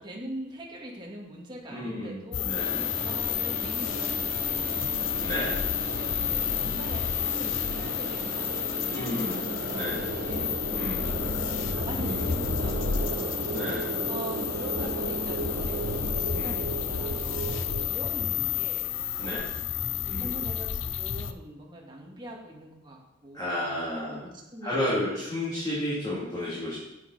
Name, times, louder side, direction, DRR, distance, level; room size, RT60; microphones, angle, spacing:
voice 1, 0.0-2.5 3.0-5.4 5.7-10.0 10.3-13.3 13.6-19.4 20.1-25.2, right 1 dB, 25° right, -2 dB, 1.8 m, -43 dB
voice 2, 1.7-2.9 5.2-5.6 8.8-9.4 9.7-10.0 10.7-11.1 11.9-12.4 13.5-13.9 16.3-16.6 19.2-19.5 20.0-20.5 23.3-24.3 24.6-26.8, left 1 dB, 20° left, -9 dB, 2.5 m, -32 dB
sound 1, 2.3-21.3, left 8 dB, 70° left, 0.6 m, -31 dB
sound 2, 2.5-20.2, right 1 dB, 50° right, 1.6 m, -36 dB
sound 3, 12.7-17.9, right 7 dB, 90° right, 0.4 m, -39 dB
9.7 x 7.9 x 4.0 m, 0.92 s
head